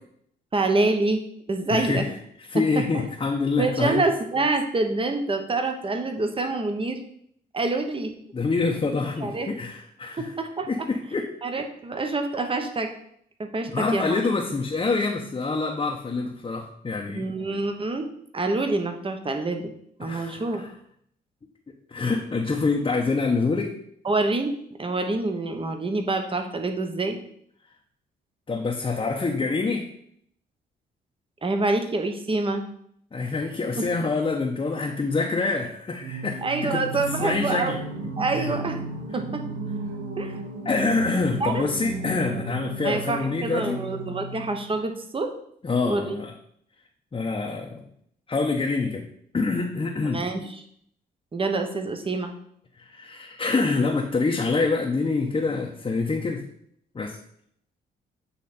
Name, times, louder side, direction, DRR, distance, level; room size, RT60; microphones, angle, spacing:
voice 1, 0.5-1.2 1.5-2.0 2.5-3.0 3.6-7.0 7.5-8.1 9.2-9.5 10.2-10.9 11.4-12.9 13.4-14.2 17.1-18.1 18.3-19.7 20.0-20.6 24.0-24.5 24.8-27.2 31.4-32.6 36.4-37.8 38.2-38.8 39.1-39.4 40.2-40.4 41.4-41.6 42.8-45.3 45.8-46.2 50.0-50.5 51.3-52.3, right 3 dB, 30° right, 6 dB, 1.1 m, -26 dB
voice 2, 1.7-2.1 2.5-4.0 8.3-10.3 10.7-11.3 13.6-17.3 20.0-20.7 21.9-23.8 28.5-29.9 33.1-37.8 38.3-38.5 40.6-43.8 45.6-46.3 47.1-47.8 48.3-49.1 49.3-50.2 52.8-56.4 56.9-57.2, left 3 dB, 30° left, 0 dB, 0.9 m, -26 dB
Singing, 36.0-44.9, right 3 dB, 65° right, 1.1 m, -34 dB
8.4 x 3.2 x 4.3 m, 0.68 s
supercardioid pair, 70°, 19 cm